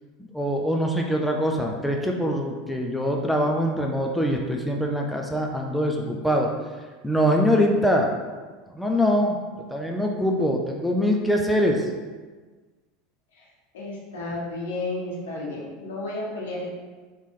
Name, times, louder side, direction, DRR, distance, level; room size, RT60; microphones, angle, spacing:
voice 1, 0.3-6.5 7.0-8.1 8.7-11.9, equal, 5° left, 1 dB, 0.6 m, -23 dB
voice 2, 13.7-16.7, left 2 dB, 85° left, -4 dB, 1.3 m, -32 dB
4.0 x 3.2 x 3.6 m, 1.4 s
hypercardioid pair, 95°, 0 cm